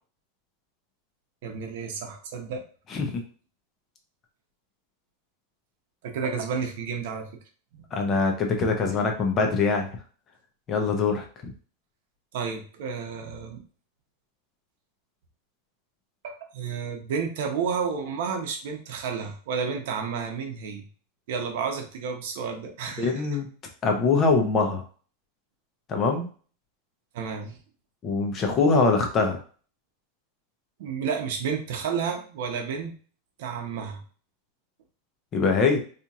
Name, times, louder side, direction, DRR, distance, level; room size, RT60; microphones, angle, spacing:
voice 1, 1.4-2.6 6.0-7.3 7.7-7.8 12.3-13.6 16.2-20.9 21.3-23.3 27.1-27.6 30.8-32.9 33.4-34.0, right 6 dB, 60° right, 4 dB, 0.9 m, -31 dB
voice 2, 2.9-3.2 7.9-9.9 10.7-11.2 23.0-23.5 23.8-24.8 25.9-26.3 28.0-29.4 35.3-35.8, left 4 dB, 20° left, 3 dB, 0.7 m, -23 dB
4.2 x 3.0 x 2.5 m, 0.40 s
supercardioid pair, 175°, 0 cm